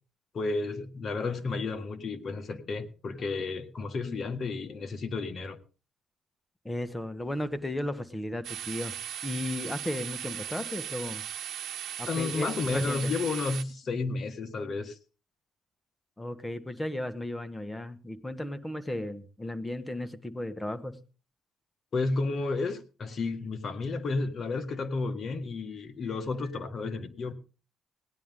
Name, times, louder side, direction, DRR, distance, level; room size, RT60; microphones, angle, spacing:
voice 1, 0.3-5.6 12.1-15.0 21.9-27.3, left 3 dB, 50° left, 1.7 m, -32 dB
voice 2, 6.6-8.9 9.2-11.2 12.0-13.1 16.2-21.0, left 1 dB, 15° left, 1.5 m, -35 dB
sound 1, 8.4-13.6, right 10 dB, 75° right, 1.0 m, -38 dB
18.0 x 10.5 x 3.7 m
cardioid pair, 90°, 0 cm